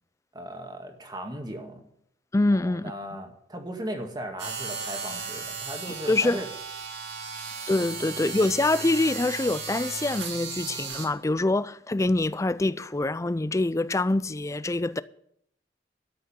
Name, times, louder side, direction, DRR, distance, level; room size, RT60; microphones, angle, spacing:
voice 1, 0.3-1.9 2.5-6.5, right 1 dB, 25° right, 1.9 m, -37 dB
voice 2, 2.3-2.9 6.1-6.4 7.7-15.0, left 2 dB, 15° left, 0.4 m, -25 dB
sound 1, 4.4-11.1, right 5 dB, 70° right, 2.4 m, -35 dB
13.0 x 6.6 x 9.2 m
head